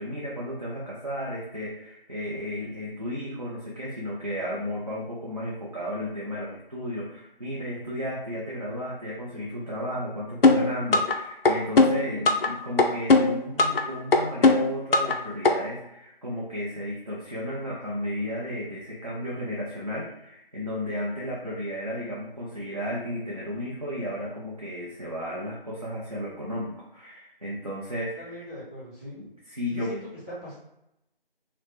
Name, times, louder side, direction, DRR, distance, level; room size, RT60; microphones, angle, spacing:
voice 1, 0.0-28.4 29.2-29.9, equal, 40° right, -6 dB, 0.6 m, -34 dB
sound 1, 10.4-11.2 11.5-12.5 12.8-13.8 14.1-15.2 15.5-15.6, left 3 dB, 70° left, 0.5 m, -18 dB
voice 2, 28.2-29.2 29.7-30.0 30.3-30.5, equal, 15° right, -16 dB, 1.2 m, -40 dB
2.9 x 2.1 x 3.1 m, 0.83 s
figure-of-eight pair, 170°, 30 cm